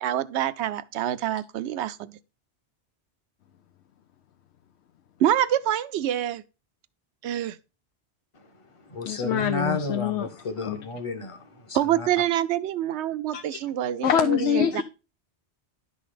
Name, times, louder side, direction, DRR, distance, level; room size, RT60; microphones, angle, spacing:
voice 1, 0.0-2.2 5.2-6.4 7.2-7.6 11.7-14.8, right 11 dB, 75° right, 0.9 m, -26 dB
voice 2, 8.3-12.1, left 2 dB, 30° left, 1.1 m, -33 dB
voice 3, 9.1-10.3 10.7-10.8 13.3-13.6 14.0-14.8, left 9 dB, 80° left, 0.9 m, -25 dB
11.0 x 4.0 x 4.9 m
omnidirectional pair, 1.2 m